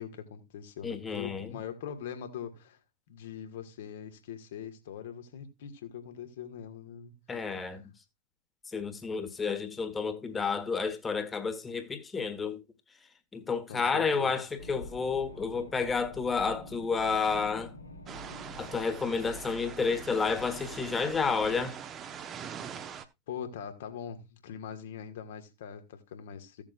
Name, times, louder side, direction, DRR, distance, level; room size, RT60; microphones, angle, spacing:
voice 1, 0.0-2.8 3.1-7.8 13.7-14.4 23.3-26.6, left 8 dB, 55° left, 1.8 m, -42 dB
voice 2, 0.8-1.6 7.3-7.8 8.7-12.6 13.3-17.7 18.6-21.8, left 5 dB, 15° left, 1.5 m, -30 dB
sound 1, 14.6-21.7, left 1 dB, 75° left, 2.5 m, -47 dB
sound 2, 18.1-23.0, right 8 dB, 25° right, 1.0 m, -43 dB
15.5 x 7.2 x 2.5 m
figure-of-eight pair, 90°, 0 cm